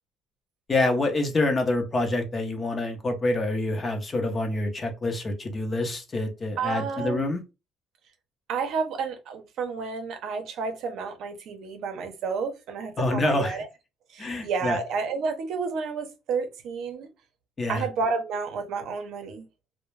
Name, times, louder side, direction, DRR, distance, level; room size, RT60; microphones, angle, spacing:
voice 1, 0.7-7.4 13.0-13.6 14.2-14.8 17.6-17.9, left 2 dB, 25° left, 0.6 m, -26 dB
voice 2, 6.6-7.3 8.5-13.7 14.1-17.1 17.7-19.5, right 5 dB, 65° right, 0.6 m, -31 dB
2.2 x 2.0 x 3.1 m
cardioid pair, 125°, 0 cm